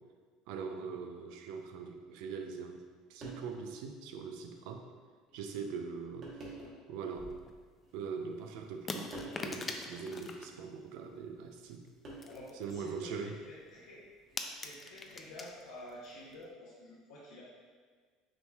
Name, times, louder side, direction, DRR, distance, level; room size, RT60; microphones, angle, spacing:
voice 1, 0.5-2.8 3.1-4.8 5.3-6.3 6.9-7.3 7.9-11.9 12.5-13.4, right 5 dB, 75° right, 5 dB, 0.4 m, -42 dB
sound 1, 1.5-1.7 2.8-2.9 3.2-3.7 4.3-4.4 5.3-5.5 6.2-6.9 7.8-8.4 9.1-9.5 11.0-11.2 12.0-12.6 14.2-14.5, right 2 dB, 45° right, 1.2 m, -48 dB
sound 2, 7.1-7.6 8.9-10.5 11.5-11.9 12.2-12.9 13.2-13.4 13.6-13.7 13.9-15.6 15.9-16.1 16.3-16.4, left 3 dB, 30° left, 0.4 m, -42 dB
voice 2, 12.2-14.0 14.6-17.4, left 1 dB, 80° left, -8 dB, 0.8 m, -50 dB
5.7 x 3.2 x 2.3 m, 1.5 s
hypercardioid pair, 85°, 0 cm